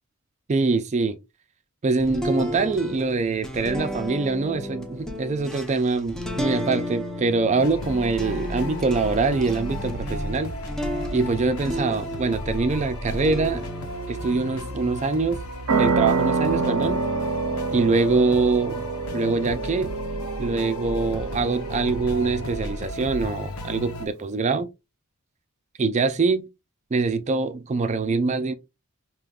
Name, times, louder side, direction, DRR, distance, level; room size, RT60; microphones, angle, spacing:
voice 1, 0.5-1.2 1.8-10.5 11.1-13.7 14.1-15.4 15.8-17.0 17.7-18.8 19.1-19.9 20.4-24.7 25.8-26.5 26.9-28.5, right 3 dB, 30° right, 0.4 m, -24 dB
sound 1, 2.0-12.6 13.0-15.4, equal, 5° left, 0.7 m, -33 dB
sound 2, 7.6-24.1, left 1 dB, 75° left, 0.8 m, -34 dB
sound 3, 15.7-22.9, right 4 dB, 90° right, 0.5 m, -27 dB
5.0 x 2.9 x 2.4 m
head